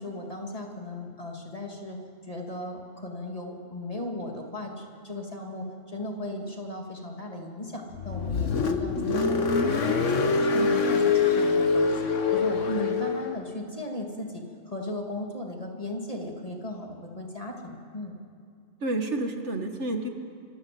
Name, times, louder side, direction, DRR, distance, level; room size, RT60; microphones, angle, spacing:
voice 1, 0.0-2.0 2.3-12.0 12.3-18.1, left 1 dB, 30° left, 0 dB, 3.0 m, -37 dB
Car, 7.9-13.4, left 4 dB, 70° left, 1.7 m, -24 dB
voice 2, 18.8-20.1, right 2 dB, 65° right, 5 dB, 2.1 m, -30 dB
26.0 x 25.0 x 7.9 m, 2.3 s
omnidirectional pair, 1.3 m